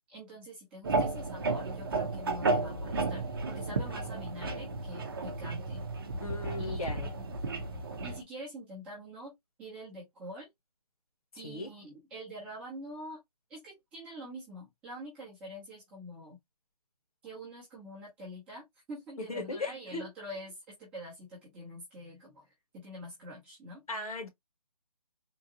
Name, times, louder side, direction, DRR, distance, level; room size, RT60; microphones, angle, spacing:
voice 1, 0.1-5.8 6.6-7.3 8.0-9.3 9.6-10.5 11.3-13.2 13.5-16.4 17.2-22.4 22.7-23.8, equal, 5° right, 0.9 m, -45 dB
sound 1, 0.8-8.2, right 3 dB, 35° right, 0.8 m, -33 dB
voice 2, 6.2-7.1 11.4-11.7 19.3-20.0 23.9-24.3, left 2 dB, 60° left, 1.7 m, -37 dB
3.8 x 2.5 x 2.7 m
hypercardioid pair, 165°, 21 cm